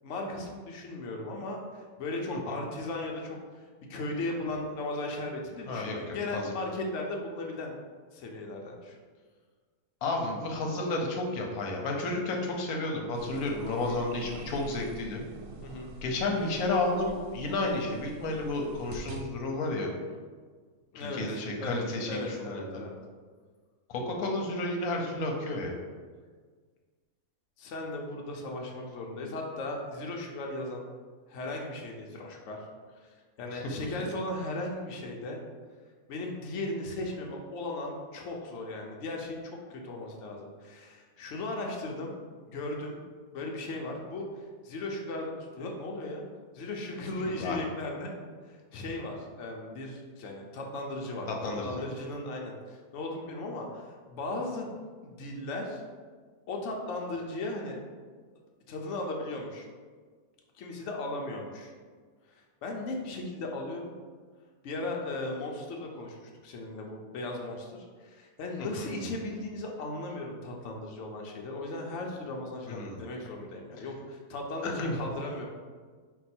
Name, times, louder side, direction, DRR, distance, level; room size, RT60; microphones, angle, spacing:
voice 1, 0.0-3.4 3.9-7.7 8.1-8.9 13.8-14.0 15.6-15.9 20.9-23.0 27.6-30.9 31.3-32.6 33.0-35.4 36.1-42.1 42.5-43.0 43.3-46.2 46.5-48.2 48.5-54.8 55.0-55.8 56.5-57.8 58.7-59.7 60.6-61.7 62.3-63.9 64.6-75.5, left 2 dB, 65° left, 0 dB, 0.9 m, -37 dB
voice 2, 5.6-6.5 10.0-15.2 16.0-19.9 20.9-22.8 23.9-25.8 33.5-33.7 47.4-47.6 51.3-51.9 68.6-68.9 72.7-73.0 74.6-75.0, left 2 dB, 85° left, 1 dB, 1.1 m, -32 dB
sound 1, 13.1-19.2, right 3 dB, 70° right, 0.8 m, -46 dB
4.5 x 2.3 x 4.2 m, 1.6 s
omnidirectional pair, 1.5 m